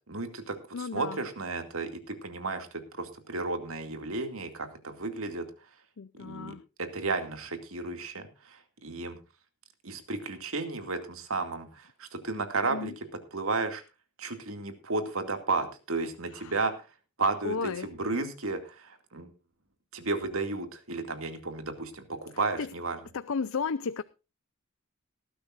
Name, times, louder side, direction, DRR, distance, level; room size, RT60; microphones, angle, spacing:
voice 1, 0.1-5.5 6.2-9.2 9.8-13.1 13.3-13.8 14.2-16.9 17.2-19.3 19.9-23.0, right 3 dB, 70° right, 2.3 m, -33 dB
voice 2, 0.7-1.2 6.0-6.6 12.7-12.9 16.3-16.5 17.4-17.9 22.6-22.7 23.1-24.0, left 5 dB, 70° left, 0.5 m, -33 dB
19.5 x 12.0 x 2.5 m
head